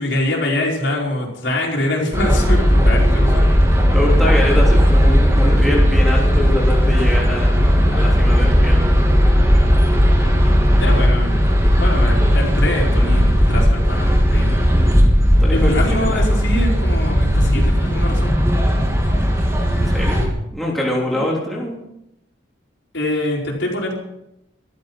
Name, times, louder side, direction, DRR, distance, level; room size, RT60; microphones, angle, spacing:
voice 1, 0.0-3.5 10.8-14.7 15.5-18.3 21.1-21.3 22.9-23.9, left 1 dB, 65° left, -2 dB, 4.8 m, -24 dB
sound 1, 2.1-20.3, equal, 15° right, 3.1 m, -15 dB
voice 2, 3.9-9.1 15.4-16.2 19.7-20.3 20.5-21.8, left 1 dB, ahead, -4 dB, 3.4 m, -24 dB
14.0 x 13.5 x 5.9 m, 0.82 s
head